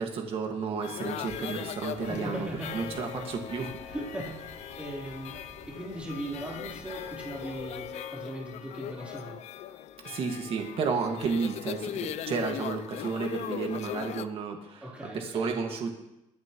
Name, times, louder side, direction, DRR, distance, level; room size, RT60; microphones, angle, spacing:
voice 1, 0.0-3.7 10.0-14.8 15.1-15.9, right 5 dB, 45° right, 3 dB, 1.8 m, -32 dB
sound 1, 0.8-14.3, left 10 dB, 60° left, 0.5 m, -39 dB
voice 2, 1.9-2.8 3.8-9.4 14.8-15.5, right 1 dB, 10° right, -4 dB, 3.5 m, -39 dB
sound 2, 1.9-7.9, right 4 dB, 85° right, 3.6 m, -53 dB
22.5 x 10.5 x 3.1 m, 0.90 s
cardioid pair, 160°, 13 cm